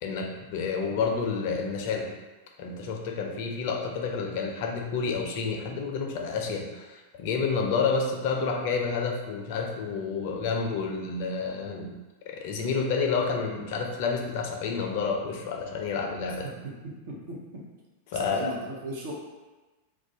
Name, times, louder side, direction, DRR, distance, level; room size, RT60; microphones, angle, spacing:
voice 1, 0.0-2.1 2.6-12.0 12.3-16.5 18.1-18.4, left 5 dB, 50° left, 2 dB, 0.4 m, -29 dB
voice 2, 16.4-17.7 18.1-19.1, right 1 dB, 55° right, -3 dB, 0.7 m, -38 dB
2.4 x 2.2 x 3.7 m, 1.2 s
figure-of-eight pair, 90°, 0 cm